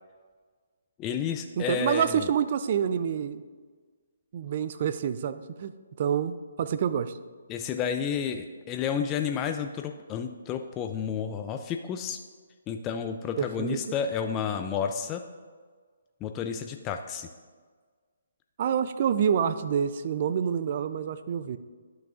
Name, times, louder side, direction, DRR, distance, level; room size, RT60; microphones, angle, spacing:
voice 1, 1.0-2.3 7.5-12.2 12.7-15.2 16.2-17.3, left 7 dB, 20° left, 5 dB, 0.4 m, -31 dB
voice 2, 1.6-3.4 4.3-5.7 6.0-7.2 13.4-13.8 18.6-21.6, right 8 dB, 45° right, 12 dB, 0.4 m, -27 dB
11.5 x 6.0 x 2.5 m, 1.5 s
figure-of-eight pair, 140°, 0 cm